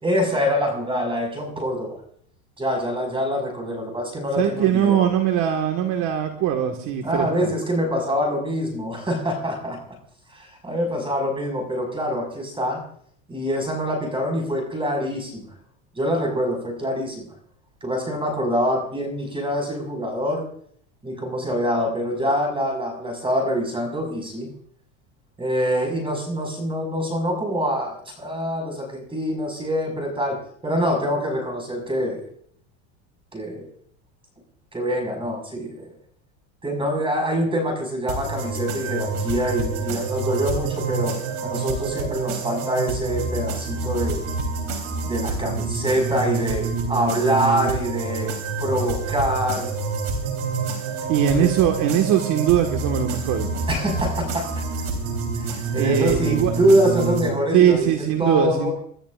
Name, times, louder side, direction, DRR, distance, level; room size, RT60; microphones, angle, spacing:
voice 1, 0.0-2.0 2.6-5.0 7.0-9.8 10.3-12.8 13.3-15.5 16.0-17.3 17.8-20.4 21.0-24.5 25.4-32.2 33.3-33.7 34.7-35.9 36.6-44.2 45.0-48.3 48.6-49.7 51.3-51.5 53.7-54.5 55.4-58.7, equal, 15° right, 2 dB, 5.8 m, -25 dB
voice 2, 4.3-7.5 51.1-53.5 55.8-56.5 57.5-58.7, right 10 dB, 50° right, 3 dB, 1.8 m, -21 dB
sound 1, 38.1-57.3, right 4 dB, 90° right, 4.0 m, -27 dB
30.0 x 13.0 x 2.5 m, 0.62 s
supercardioid pair, 130°, 40 cm